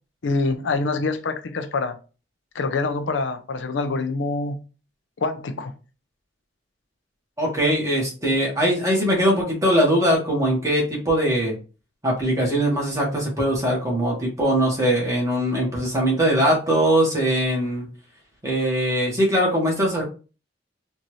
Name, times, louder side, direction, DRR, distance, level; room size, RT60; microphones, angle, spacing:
voice 1, 0.2-2.0 2.5-4.6 5.2-5.7, left 3 dB, 75° left, 0.5 m, -25 dB
voice 2, 7.4-11.6 12.0-17.8 18.4-20.0, right 1 dB, 15° right, 1.5 m, -21 dB
3.9 x 2.6 x 3.1 m
head